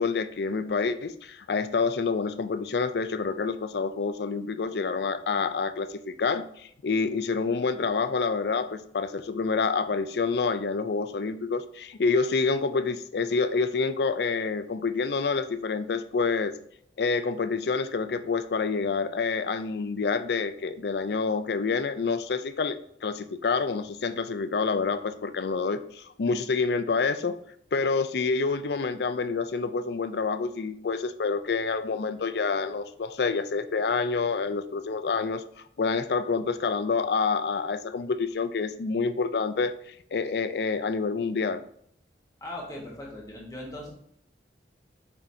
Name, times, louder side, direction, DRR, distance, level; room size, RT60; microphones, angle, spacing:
voice 1, 0.0-16.5 17.0-27.4 27.7-35.5 35.8-41.6, left 4 dB, 65° left, 12 dB, 0.4 m, -27 dB
voice 2, 42.4-43.9, left 1 dB, 20° left, -3 dB, 1.5 m, -39 dB
7.0 x 5.6 x 2.7 m, 0.69 s
head